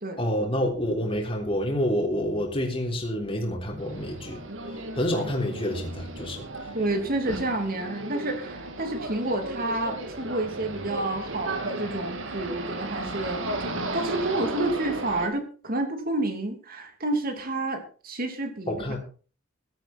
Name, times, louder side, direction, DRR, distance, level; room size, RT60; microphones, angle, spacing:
voice 1, 0.2-4.4 4.9-6.5 18.7-19.0, equal, 30° left, -1 dB, 3.5 m, -28 dB
sound 1, 3.8-15.3, right 2 dB, 75° right, 2.7 m, -35 dB
voice 2, 6.7-13.4 13.9-19.0, right 2 dB, 50° right, 5 dB, 3.1 m, -29 dB
15.0 x 12.0 x 4.4 m, 0.38 s
head